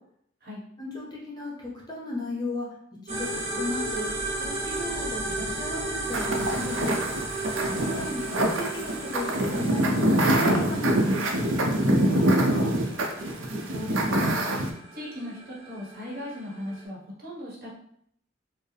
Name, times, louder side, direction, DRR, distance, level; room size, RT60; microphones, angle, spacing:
voice 1, 0.8-2.7 3.0-4.0 4.4-7.0 8.0-12.7, left 1 dB, 20° left, -3 dB, 0.8 m, -35 dB
sound 1, 3.1-16.8, right 2 dB, 35° right, 0.7 m, -34 dB
sound 2, 6.1-14.7, right 1 dB, 80° right, 0.6 m, -25 dB
voice 2, 7.7-8.1 13.6-14.5 14.9-17.7, left 1 dB, 50° right, -5 dB, 1.2 m, -38 dB
4.4 x 2.0 x 3.3 m, 0.69 s
head